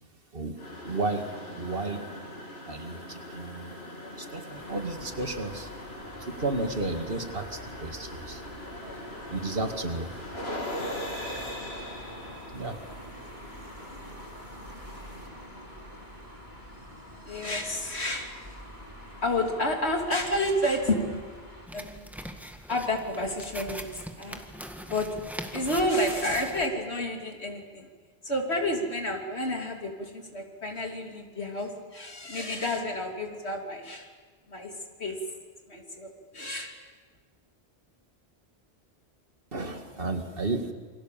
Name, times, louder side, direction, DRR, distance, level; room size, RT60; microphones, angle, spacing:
sound 1, 0.6-15.5, left 1 dB, 75° left, 3.6 m, -41 dB
voice 1, 0.8-1.2 1.5-2.0 2.7-3.8 4.2-5.7 6.2-8.4 9.3-10.1 12.5-12.8 14.1-14.2 15.1-15.2 39.5-40.7, right 3 dB, 60° right, 6 dB, 2.3 m, -32 dB
sound 2, 4.5-21.7, equal, 45° left, 6.3 m, -45 dB
voice 2, 17.2-18.6 19.2-21.2 21.7-22.0 22.7-24.4 24.9-25.1 25.5-27.9 28.2-34.1 34.5-34.7 35.0-35.2 35.7-36.7, left 1 dB, 90° left, 2 dB, 3.3 m, -30 dB
sound 3, 21.7-26.7, equal, ahead, 1.7 m, -41 dB
28.0 x 24.5 x 7.6 m, 1.5 s
omnidirectional pair, 1.1 m